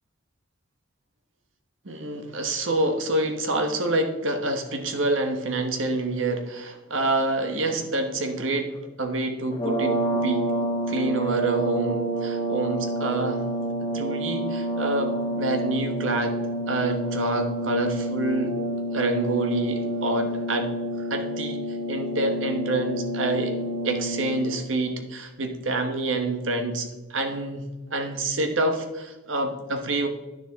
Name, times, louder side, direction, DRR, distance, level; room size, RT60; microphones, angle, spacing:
voice 1, 1.8-10.5 10.9-13.4 13.9-16.4 16.7-18.6 18.9-20.7 21.1-21.6 21.9-23.6 23.8-30.1, right 2 dB, 80° right, 6 dB, 1.2 m, -27 dB
sound 1, 9.5-24.6, right 1 dB, 25° left, 1.6 m, -28 dB
10.0 x 6.8 x 3.6 m, 1.1 s
head